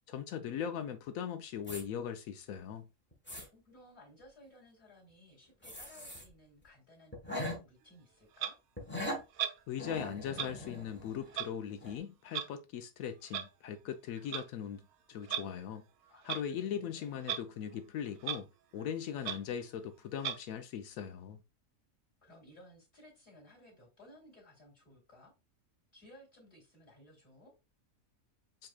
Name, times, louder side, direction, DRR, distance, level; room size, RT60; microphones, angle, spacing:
voice 1, 0.1-2.9 9.7-14.8 15.1-15.8 16.2-18.5 18.7-21.4, left 8 dB, 80° left, 1.0 m, -39 dB
sound 1, 1.6-1.8 2.5-2.6 3.1-3.5 5.6-6.3 6.6-6.7 7.1-7.6 8.8-9.2 9.8-11.5 11.8-12.0, left 1 dB, 10° left, 1.0 m, -41 dB
voice 2, 3.5-8.5 16.1-17.2 22.2-25.3 25.9-27.5, left 1 dB, 35° left, 3.0 m, -58 dB
Clock, 8.4-8.5 9.4-9.6 10.3-10.5 11.3-11.5 12.3-12.5 13.3-13.5 14.2-14.4 15.2-15.5 16.2-16.5 17.2-17.4 17.7-17.8 18.2-18.4 18.8-18.9 19.2-19.4 20.2-20.4, right 9 dB, 80° right, 1.0 m, -36 dB
7.8 x 2.8 x 2.3 m
omnidirectional pair, 1.5 m